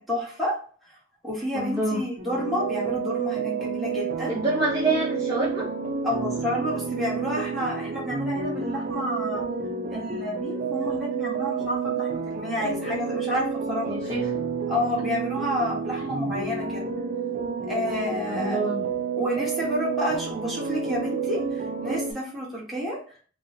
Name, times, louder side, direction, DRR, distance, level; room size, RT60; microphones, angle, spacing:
voice 1, 0.1-0.6 0.9-1.0 1.2-4.3 6.0-9.4 9.9-14.1 14.7-16.9 17.7-18.6 19.2-23.0, equal, ahead, -6 dB, 1.2 m, -30 dB
voice 2, 1.5-2.0 4.3-5.7 13.9-14.3 16.0-16.1 18.3-18.8, right 2 dB, 20° right, -8 dB, 0.9 m, -27 dB
sound 1, 2.2-22.1, right 5 dB, 40° right, 0.4 m, -30 dB
3.8 x 2.2 x 3.3 m, 0.43 s
head